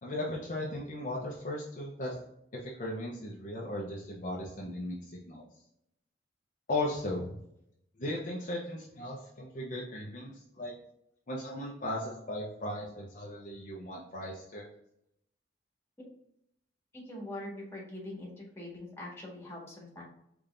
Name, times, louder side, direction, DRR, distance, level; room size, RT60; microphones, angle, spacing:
voice 1, 0.0-2.2 2.5-5.4 6.7-7.4 8.0-10.7 11.3-14.7, left 1 dB, 45° left, -3 dB, 0.8 m, -37 dB
voice 2, 16.9-20.0, left 1 dB, 15° left, -3 dB, 1.7 m, -43 dB
5.2 x 3.5 x 2.6 m, 0.77 s
head